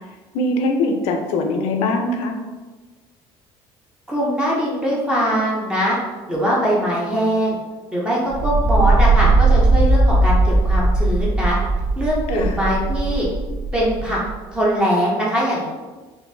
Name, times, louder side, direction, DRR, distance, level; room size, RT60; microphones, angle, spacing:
voice 1, 0.3-2.4 12.3-12.6, left 2 dB, 80° left, 4 dB, 0.5 m, -22 dB
voice 2, 4.1-6.0 6.3-7.6 7.9-11.6 12.0-13.3 13.7-14.2 14.5-15.7, equal, 10° right, -5 dB, 0.5 m, -21 dB
sound 1, 8.3-14.3, right 2 dB, 75° right, 0.7 m, -18 dB
3.8 x 2.6 x 2.6 m, 1.3 s
cardioid pair, 175°, 10 cm